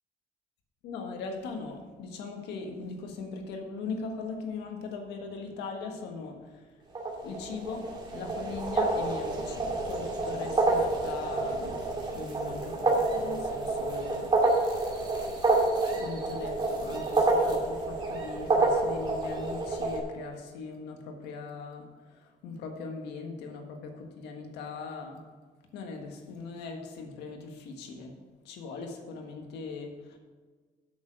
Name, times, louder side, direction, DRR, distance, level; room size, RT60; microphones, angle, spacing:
voice 1, 0.8-6.8 7.2-11.8 12.1-14.3 15.9-25.2 25.7-28.1 28.4-30.2, left 4 dB, 85° left, 4 dB, 1.6 m, -40 dB
sound 1, 7.0-20.0, right 2 dB, 25° right, 2.4 m, -28 dB
8.1 x 6.8 x 6.3 m, 1.4 s
cardioid pair, 110°, 17 cm